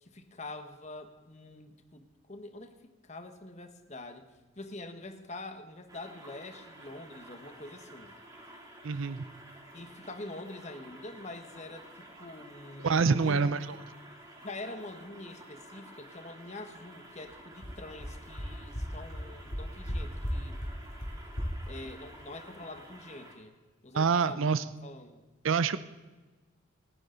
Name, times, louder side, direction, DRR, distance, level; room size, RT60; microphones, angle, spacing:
voice 1, 0.0-4.3 4.6-8.1 9.7-13.5 14.4-20.6 21.7-23.5 23.8-24.5 24.8-25.2, left 2 dB, 35° left, 6 dB, 1.3 m, -45 dB
sound 1, 5.9-23.4, right 1 dB, 15° right, 2.7 m, -51 dB
voice 2, 8.8-9.2 12.8-13.7 23.9-24.6 25.4-25.8, right 5 dB, 70° right, 14 dB, 0.5 m, -26 dB
sound 2, 17.6-17.7 18.0-18.1 18.4-18.5 18.7-18.8 19.1-19.2 19.5-19.9 20.2-20.3 20.6-20.7 21.0-21.1 21.4-21.5, equal, 65° left, 4.9 m, -34 dB
28.5 x 9.9 x 4.0 m, 1.2 s
head